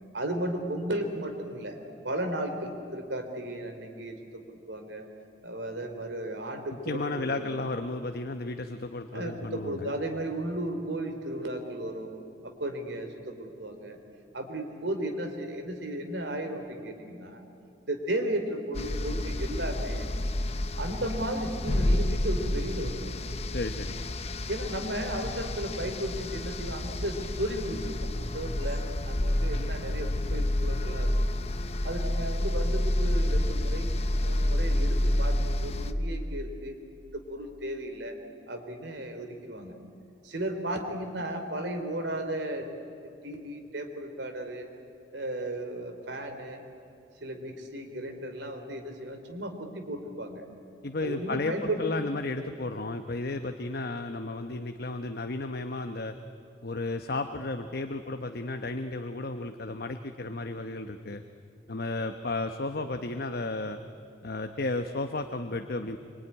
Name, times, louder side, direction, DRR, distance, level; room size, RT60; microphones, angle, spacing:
voice 1, 0.1-1.8 2.0-5.1 5.4-7.5 9.1-12.1 12.4-14.0 14.3-17.4 17.9-20.1 20.8-23.1 24.5-31.1 31.8-33.9 34.2-36.8 37.1-38.1 38.5-39.7 40.2-42.7 43.2-44.7 45.1-46.6 47.2-50.4 51.0-51.9, right 1 dB, 85° right, 5 dB, 3.3 m, -34 dB
voice 2, 6.8-9.9 23.5-24.0 50.8-56.2 56.6-61.2 61.7-63.8 64.2-66.0, left 2 dB, 60° left, 7 dB, 1.0 m, -33 dB
sound 1, 18.7-35.9, left 1 dB, 35° left, 0.9 m, -29 dB
25.5 x 23.5 x 9.8 m, 2.5 s
head